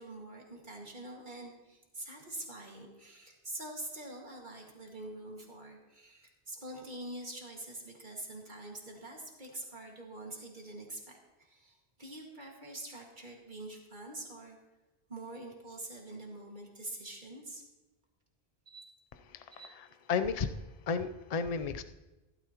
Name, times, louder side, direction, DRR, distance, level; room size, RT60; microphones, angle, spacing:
voice 1, 0.0-14.6 15.1-17.6 18.7-19.0 19.5-20.0, right 1 dB, 50° right, 0 dB, 2.1 m, -45 dB
voice 2, 19.3-20.5 20.9-21.8, left 5 dB, 45° left, 10 dB, 0.6 m, -33 dB
15.5 x 12.5 x 2.9 m, 1.1 s
omnidirectional pair, 1.1 m